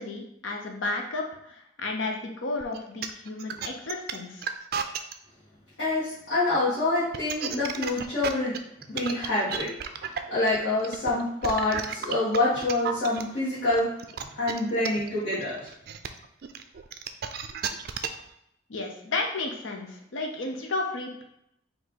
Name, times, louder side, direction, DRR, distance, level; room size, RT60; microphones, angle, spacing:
voice 1, 0.0-4.5 18.7-21.2, left 3 dB, 85° left, 2 dB, 0.7 m, -33 dB
sound 1, 2.6-5.1 7.0-13.2 13.7-18.3, right 7 dB, 50° right, 0.3 m, -33 dB
voice 2, 5.8-8.5 8.9-9.7 10.0-13.9 14.4-15.7, left 2 dB, 60° left, -12 dB, 1.7 m, -26 dB
4.5 x 2.7 x 3.9 m, 0.78 s
head